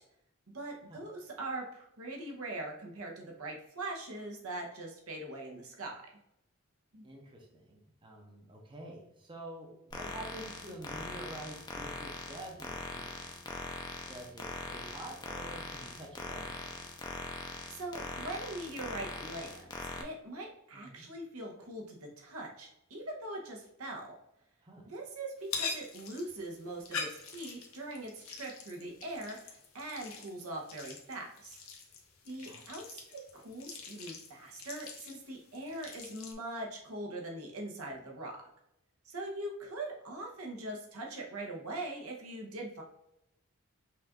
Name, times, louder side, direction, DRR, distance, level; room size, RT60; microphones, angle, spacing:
voice 1, 0.5-5.9 6.9-7.0 17.7-19.7 20.0-24.1 24.9-31.6 32.2-38.4 39.0-42.8, right 2 dB, 80° right, 0 dB, 1.0 m, -42 dB
voice 2, 7.0-13.3 14.1-16.7 20.7-21.1 24.6-24.9 32.4-32.7, right 1 dB, 20° right, 0 dB, 0.7 m, -48 dB
sound 1, 9.9-20.0, left 3 dB, 20° left, 0.6 m, -42 dB
sound 2, 25.4-36.3, left 5 dB, 65° left, 0.9 m, -44 dB
5.6 x 2.5 x 3.6 m, 0.84 s
head